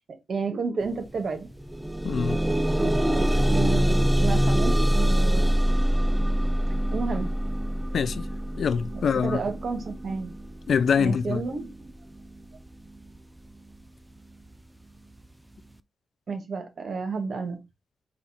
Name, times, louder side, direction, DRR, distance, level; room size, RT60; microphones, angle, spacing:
voice 1, 0.3-1.5 2.8-5.5 6.9-7.3 9.2-10.3 11.0-11.9 16.3-17.6, right 4 dB, 60° right, 1.3 m, -31 dB
sound 1, 0.9-1.0 1.4-12.4 13.2-13.3 13.7-13.8, equal, 5° right, 0.4 m, -25 dB
voice 2, 2.0-2.4 7.9-8.3 8.6-9.4 10.7-11.5, left 6 dB, 65° left, 0.3 m, -24 dB
4.1 x 2.4 x 4.7 m
cardioid pair, 60°, 0 cm